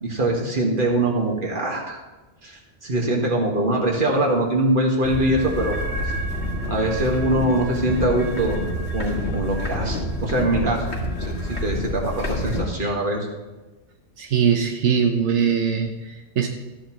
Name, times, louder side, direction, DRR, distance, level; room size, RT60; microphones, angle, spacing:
voice 1, 0.0-2.0 2.4-5.8 6.7-8.6 8.9-13.3, right 1 dB, 50° right, 0 dB, 1.9 m, -23 dB
sound 1, 5.0-12.6, equal, 70° left, 2.0 m, -28 dB
voice 2, 14.2-16.5, right 7 dB, 85° right, 4 dB, 1.1 m, -21 dB
14.0 x 9.7 x 3.1 m, 1.1 s
omnidirectional pair, 1.2 m